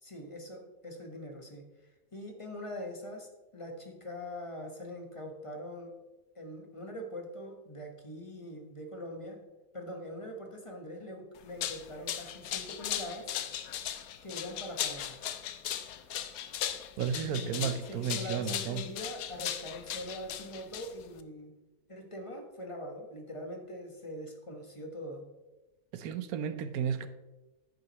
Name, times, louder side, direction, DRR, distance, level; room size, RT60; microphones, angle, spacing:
voice 1, 0.0-1.6 2.1-6.0 6.3-9.4 9.7-13.3 14.2-15.2 17.2-21.5 21.9-25.3, equal, 25° left, 3 dB, 1.3 m, -43 dB
sound 1, 11.4-21.2, left 10 dB, 90° left, 1.1 m, -37 dB
voice 2, 17.0-18.8 25.9-27.1, right 7 dB, 85° right, 10 dB, 1.2 m, -33 dB
10.5 x 8.9 x 3.0 m, 1.1 s
omnidirectional pair, 1.5 m